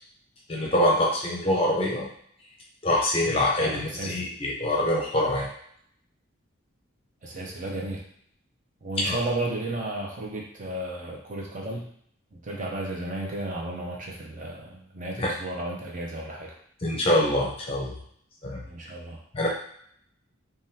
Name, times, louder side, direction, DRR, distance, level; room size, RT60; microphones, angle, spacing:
voice 1, 0.5-2.1 2.8-5.5 9.1-9.2 15.2-15.3 16.8-17.9 18.4-18.6 19.3-19.5, left 1 dB, 25° left, -3 dB, 0.6 m, -24 dB
voice 2, 3.6-4.3 7.2-8.0 8.8-11.9 12.3-16.5 18.7-19.2, right 2 dB, 40° right, -1 dB, 0.5 m, -33 dB
3.5 x 2.3 x 2.7 m, 0.65 s
head